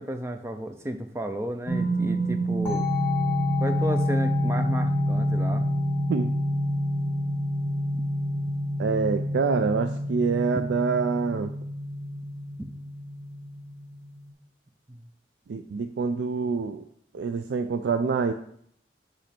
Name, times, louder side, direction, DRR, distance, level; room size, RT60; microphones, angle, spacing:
voice 1, 0.0-2.9 3.6-5.7 12.6-12.7 14.9-15.0, right 1 dB, 15° right, 7 dB, 0.5 m, -32 dB
sound 1, 1.7-14.3, equal, 10° left, 1.7 m, -27 dB
voice 2, 8.8-11.5 15.5-16.8 17.1-18.3, right 5 dB, 90° right, 8 dB, 0.4 m, -26 dB
6.4 x 5.1 x 4.3 m, 0.68 s
head